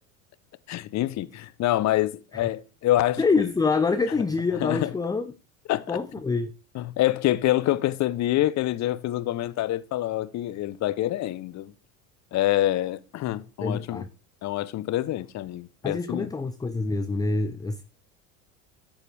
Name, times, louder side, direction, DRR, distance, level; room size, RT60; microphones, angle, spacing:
voice 1, 0.7-3.2 4.6-4.9 5.7-5.8 6.8-11.7 12.3-14.0 14.4-16.3, left 14 dB, 40° left, 0.8 m, -26 dB
voice 2, 3.2-5.3 5.9-6.5 13.6-14.1 15.8-17.8, left 4 dB, 10° left, 0.5 m, -26 dB
12.0 x 7.7 x 3.4 m
hypercardioid pair, 90°, 42 cm